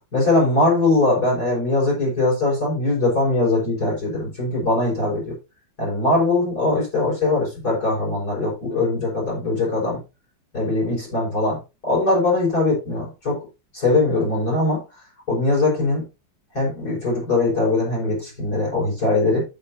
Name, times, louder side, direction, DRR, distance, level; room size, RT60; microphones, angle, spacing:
voice 1, 0.1-5.3 5.8-10.0 10.5-11.6 11.8-13.4 13.7-14.8 15.3-16.0 16.5-19.4, left 2 dB, 55° left, -4 dB, 6.4 m, -21 dB
14.5 x 5.8 x 2.8 m, 0.27 s
omnidirectional pair, 2.0 m